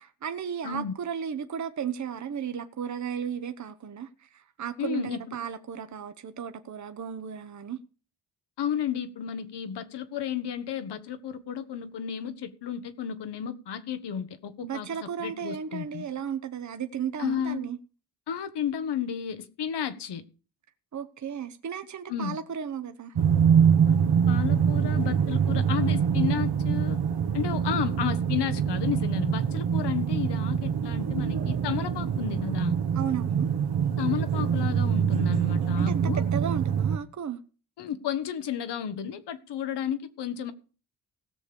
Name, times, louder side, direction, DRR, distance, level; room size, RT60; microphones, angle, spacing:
voice 1, 0.2-7.8 14.6-17.8 20.9-23.2 32.9-33.5 35.8-37.4, right 8 dB, 45° right, 1.0 m, -34 dB
voice 2, 4.8-5.4 8.6-16.1 17.2-17.7 18.3-20.2 22.1-22.4 23.9-24.0 24.3-27.0 27.3-32.8 34.0-36.2 37.8-40.5, left 9 dB, 75° left, 1.3 m, -32 dB
sound 1, 23.2-37.0, right 7 dB, 65° right, 1.3 m, -25 dB
17.0 x 6.6 x 5.2 m
cardioid pair, 75°, 41 cm